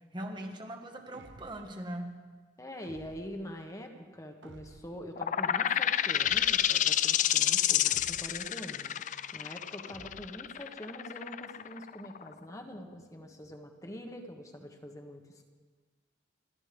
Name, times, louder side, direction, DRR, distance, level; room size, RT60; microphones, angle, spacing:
voice 1, 0.1-2.2, right 1 dB, 25° right, 4 dB, 1.6 m, -40 dB
sound 1, 1.1-1.8 2.8-3.5 4.4-5.1 6.2-6.8 7.9-8.6 9.9-10.5, right 3 dB, 85° right, 0.7 m, -53 dB
voice 2, 2.6-9.0 9.3-15.5, equal, 20° left, 4 dB, 1.5 m, -44 dB
sound 2, 5.2-12.5, left 11 dB, 45° left, 0.4 m, -29 dB
29.5 x 13.5 x 3.5 m, 1.5 s
head